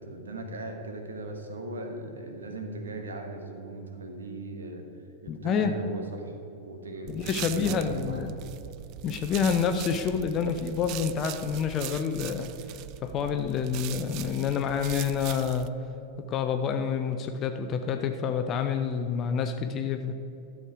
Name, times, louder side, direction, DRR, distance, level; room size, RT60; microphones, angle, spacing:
voice 1, 0.0-4.8 5.2-8.4, right 2 dB, 70° right, 4 dB, 1.3 m, -38 dB
voice 2, 5.3-5.7 7.1-8.4 9.0-15.7 16.3-20.1, left 7 dB, 30° left, 7 dB, 0.6 m, -28 dB
sound 1, 7.1-15.7, right 13 dB, 40° right, 0.3 m, -40 dB
12.5 x 6.5 x 4.7 m, 3.0 s
figure-of-eight pair, 90°, 0 cm